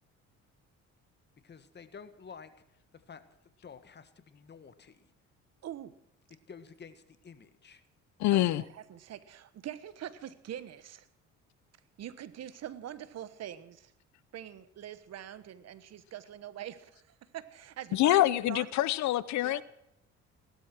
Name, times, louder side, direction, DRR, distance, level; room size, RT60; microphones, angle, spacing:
voice 1, 1.4-5.1 6.5-7.8, left 6 dB, 35° left, 11 dB, 1.6 m, -51 dB
voice 2, 5.6-5.9 8.3-8.5 8.7-11.1 12.0-13.9 14.3-18.7 19.4-19.6, right 11 dB, 60° right, 15 dB, 1.3 m, -44 dB
voice 3, 8.2-8.6 17.9-19.6, left 15 dB, 70° left, 19 dB, 0.7 m, -26 dB
17.0 x 12.5 x 6.1 m, 0.80 s
cardioid pair, 90°, 29 cm